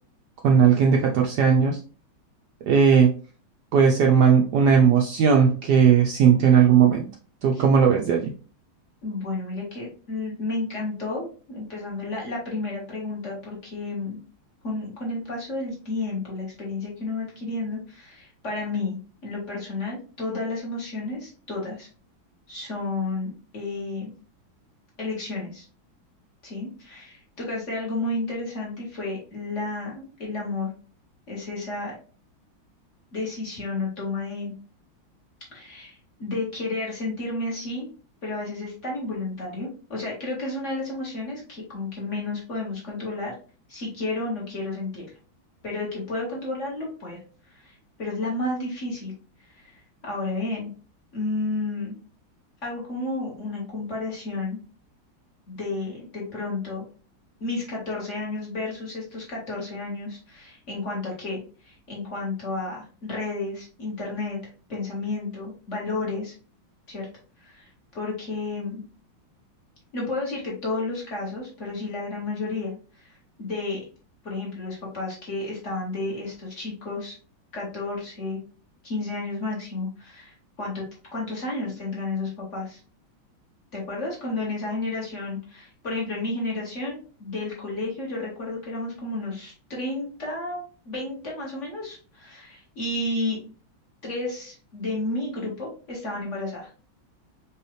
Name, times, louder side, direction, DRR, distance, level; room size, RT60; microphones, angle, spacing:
voice 1, 0.4-1.8 2.7-3.1 3.7-7.0 7.4-8.3, right 7 dB, 75° right, 1 dB, 1.0 m, -17 dB
voice 2, 9.0-14.2 14.6-21.9 22.5-24.1 25.0-25.6 26.4-30.7 31.3-31.9 33.1-34.5 35.5-37.9 38.2-43.3 43.7-45.0 45.6-47.2 47.5-49.1 49.4-50.7 51.1-51.9 52.6-54.6 55.5-56.8 57.4-64.4 64.7-66.3 66.9-67.1 67.4-68.8 69.9-73.8 74.2-77.1 77.5-78.4 78.8-80.8 81.1-82.8 83.7-93.4 94.0-96.7, left 2 dB, 40° left, -3 dB, 1.6 m, -32 dB
4.6 x 2.7 x 3.1 m, 0.37 s
omnidirectional pair, 2.2 m